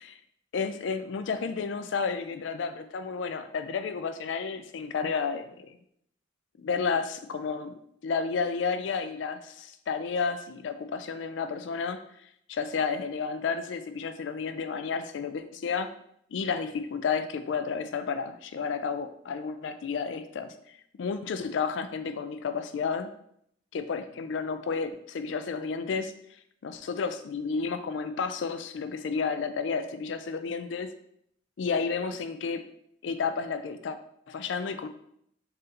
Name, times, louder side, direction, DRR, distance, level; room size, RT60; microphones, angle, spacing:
voice 1, 0.5-5.8 6.6-12.0 12.5-15.9 16.3-20.5 20.9-23.1 23.7-26.1 26.6-30.9 31.6-32.7 33.0-34.0 34.3-34.9, left 5 dB, 75° left, 9 dB, 0.4 m, -31 dB
4.0 x 2.7 x 3.7 m, 0.71 s
head